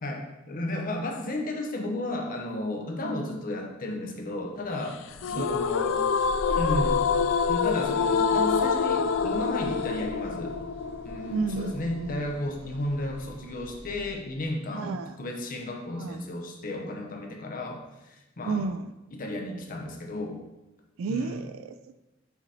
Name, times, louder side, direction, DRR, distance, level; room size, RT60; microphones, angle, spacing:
voice 1, 0.0-5.0 5.3-5.9 6.5-7.0 7.5-10.5 11.0-18.6 19.1-20.4 21.1-21.4, left 1 dB, 45° left, 2 dB, 0.8 m, -33 dB
sound 1, 5.0-14.1, equal, 15° right, 2.2 m, -41 dB
sound 2, 5.2-12.3, left 6 dB, 70° left, 0.3 m, -26 dB
voice 2, 5.3-6.2 11.3-12.2 14.7-15.2 15.9-16.2 18.4-18.9 21.0-22.0, right 4 dB, 85° right, 11 dB, 0.3 m, -33 dB
5.9 x 4.0 x 4.2 m, 1.0 s
head